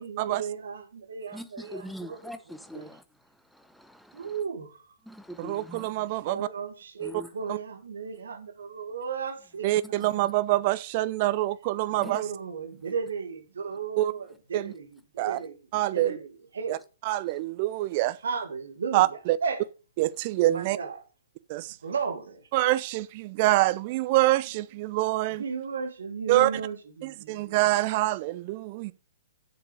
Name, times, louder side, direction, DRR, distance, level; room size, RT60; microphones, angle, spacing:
voice 1, 0.0-2.2 2.7-2.9 4.1-4.9 6.2-10.2 12.0-15.6 15.9-16.8 18.2-19.6 20.4-21.0 21.8-22.5 25.3-27.6, right 6 dB, 65° right, 1.9 m, -35 dB
voice 2, 1.3-4.4 5.0-6.0 7.0-7.3 9.8-10.3 12.0-12.2 17.3-17.4, equal, ahead, 0.8 m, -43 dB
voice 3, 5.4-6.5 7.5-7.6 9.6-12.2 14.0-14.1 14.5-14.7 15.2-15.4 15.7-16.2 16.7-16.8 17.0-18.2 18.9-19.4 20.0-20.8 21.5-21.8 22.5-25.4 26.3-26.5 27.0-28.9, right 16 dB, 40° right, 0.6 m, -25 dB
7.6 x 6.8 x 6.1 m
figure-of-eight pair, 115°, 0 cm